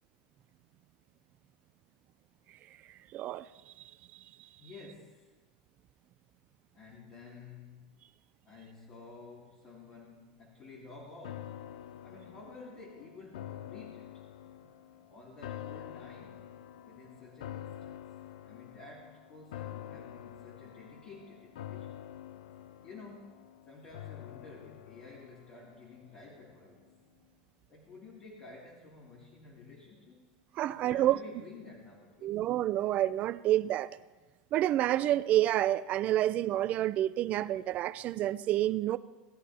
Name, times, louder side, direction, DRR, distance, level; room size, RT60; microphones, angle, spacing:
voice 1, 3.1-3.7 4.1-4.2 30.6-31.2 32.2-33.9 34.5-39.0, right 13 dB, 40° right, 0.4 m, -29 dB
voice 2, 4.6-5.4 6.7-7.9 8.4-11.6 12.0-14.2 15.1-16.4 16.8-18.0 18.4-22.0 22.8-26.9 27.7-30.4 30.7-32.4, left 3 dB, 40° left, 2.6 m, -51 dB
Piano C Minor Major haunting chord, 11.2-26.5 26.9-27.0, left 11 dB, 85° left, 0.3 m, -47 dB
18.5 x 10.0 x 2.8 m
supercardioid pair, 125°, 4 cm